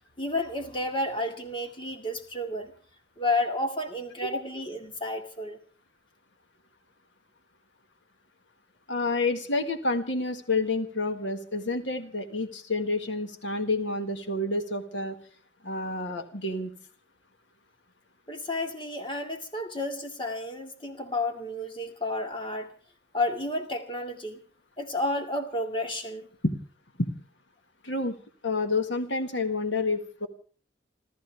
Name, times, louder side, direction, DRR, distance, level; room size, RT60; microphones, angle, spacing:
voice 1, 0.2-2.7 3.2-5.6 18.3-22.7 23.1-24.4 24.8-26.3, left 2 dB, 25° left, 5 dB, 2.3 m, -31 dB
voice 2, 8.9-15.2 15.6-16.7 26.4-26.5 27.0-27.1 27.8-28.1 28.4-30.3, left 2 dB, 70° left, 6 dB, 1.8 m, -29 dB
29.5 x 14.0 x 3.5 m, 0.40 s
head